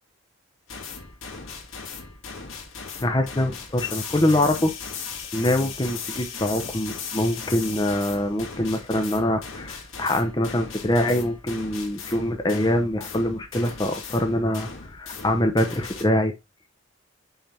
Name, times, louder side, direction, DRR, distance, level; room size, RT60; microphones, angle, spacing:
sound 1, 0.7-16.0, left 5 dB, 80° left, 2.0 m, -37 dB
voice 1, 3.0-4.7 5.3-16.3, left 1 dB, 20° left, 0.8 m, -24 dB
5.8 x 5.7 x 3.4 m
head